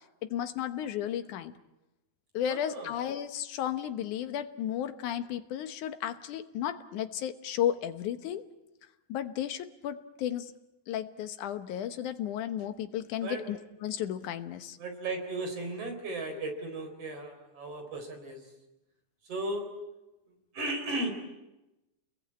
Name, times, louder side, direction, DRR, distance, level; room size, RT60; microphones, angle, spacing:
voice 1, 0.2-1.5 2.3-8.5 9.1-10.5 10.9-14.8, left 10 dB, 85° left, 9 dB, 2.6 m, -34 dB
voice 2, 2.5-2.9 13.2-13.4 14.8-18.4 19.2-19.7 20.5-21.1, right 2 dB, 50° right, 5 dB, 5.1 m, -35 dB
30.0 x 21.0 x 8.7 m, 0.98 s
omnidirectional pair, 3.4 m